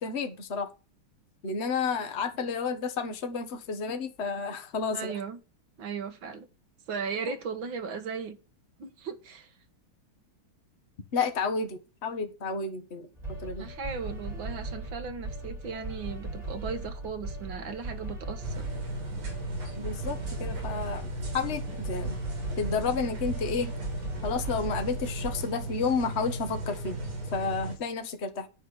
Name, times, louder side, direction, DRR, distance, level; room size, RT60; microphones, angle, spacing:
voice 1, 0.0-0.7 1.4-5.1 11.1-13.7 19.8-22.2 22.6-23.7 24.2-27.0 27.3-28.5, left 5 dB, 35° left, 1.5 m, -31 dB
voice 2, 4.9-5.4 5.8-6.5 6.9-8.4 8.8-9.5 13.6-18.7, right 5 dB, 70° right, 2.1 m, -37 dB
sound 1, 13.2-25.4, right 2 dB, 20° right, 3.4 m, -38 dB
sound 2, 18.4-27.8, right 1 dB, 85° right, 4.1 m, -36 dB
10.5 x 4.6 x 7.9 m
omnidirectional pair, 2.3 m